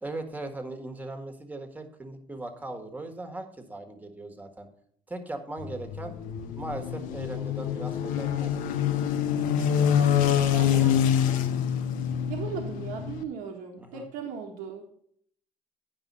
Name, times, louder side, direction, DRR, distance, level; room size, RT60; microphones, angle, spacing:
voice 1, 0.0-4.7 5.1-6.1 6.6-8.6 10.6-10.9 13.8-14.1, right 2 dB, 10° right, 6 dB, 1.5 m, -39 dB
sound 1, 5.6-13.2, left 9 dB, 85° left, 0.8 m, -26 dB
voice 2, 9.5-11.3 12.3-14.9, right 6 dB, 90° right, 1 dB, 1.5 m, -38 dB
9.8 x 5.5 x 5.4 m, 0.62 s
cardioid pair, 120°, 14 cm